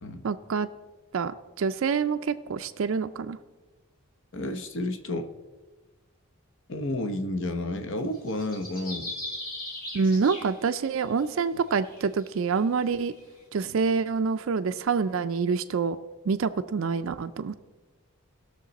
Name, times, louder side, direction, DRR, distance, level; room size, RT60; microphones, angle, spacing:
voice 1, 0.2-0.7 1.1-1.3 1.6-3.4 9.9-13.1 13.5-16.0 16.3-17.6, right 5 dB, 60° right, 9 dB, 0.4 m, -26 dB
voice 2, 4.3-5.3 6.7-9.1 13.6-13.8, left 1 dB, 55° left, 8 dB, 0.9 m, -31 dB
sound 1, 8.1-11.1 11.7-13.2, left 1 dB, 40° left, 2.6 m, -39 dB
19.0 x 6.7 x 4.1 m, 1.3 s
head